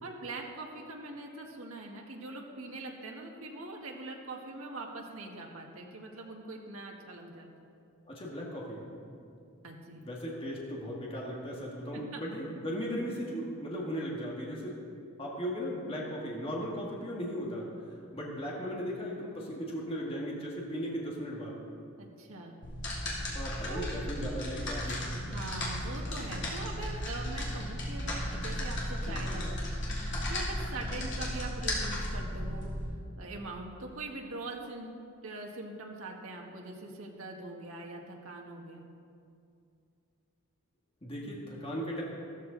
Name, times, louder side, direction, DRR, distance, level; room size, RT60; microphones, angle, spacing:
voice 1, 0.0-7.7 9.6-10.1 12.1-12.2 22.0-22.6 23.6-23.9 25.2-29.7 30.3-32.7 33.2-34.9 35.2-38.8, right 2 dB, 75° right, 0 dB, 1.7 m, -42 dB
voice 2, 8.1-9.2 10.0-14.8 15.2-17.7 18.1-21.5 23.3-25.1 41.0-42.0, equal, 25° left, -3 dB, 1.8 m, -37 dB
sound 1, 22.6-32.8, left 1 dB, 55° left, 3.0 m, -35 dB
14.0 x 14.0 x 4.0 m, 2.5 s
head